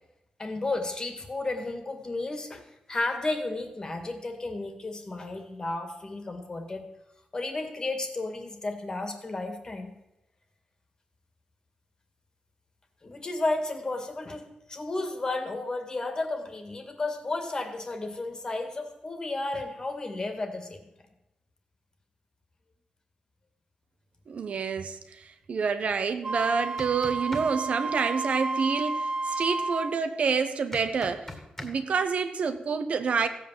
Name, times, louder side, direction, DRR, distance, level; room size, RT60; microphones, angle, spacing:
voice 1, 0.4-6.8 7.3-9.9 13.0-20.8, left 2 dB, 30° left, 2.1 m, -33 dB
voice 2, 24.3-31.3 31.6-33.3, right 5 dB, 60° right, 1.1 m, -28 dB
Wind instrument woodwind instrument, 26.2-30.0, right 3 dB, 35° right, 0.4 m, -31 dB
sound 1, 26.6-27.5 30.7-31.7, left 1 dB, 15° left, 2.1 m, -39 dB
15.5 x 8.4 x 7.6 m
wide cardioid pair, 150°, 2 cm